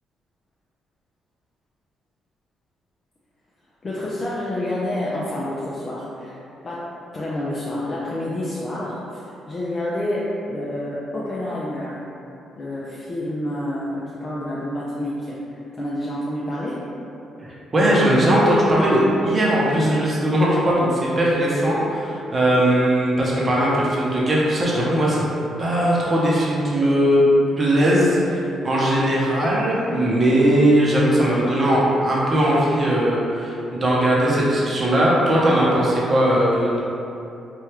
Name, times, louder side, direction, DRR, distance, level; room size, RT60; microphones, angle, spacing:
voice 1, 3.8-6.4 6.6-12.0 12.6-16.8, left 1 dB, 35° left, -7 dB, 0.4 m, -28 dB
voice 2, 17.4-25.2 25.6-27.3 27.6-36.8, right 1 dB, 30° right, -5 dB, 0.7 m, -19 dB
3.2 x 2.3 x 3.0 m, 2.8 s
cardioid pair, 90°, 0 cm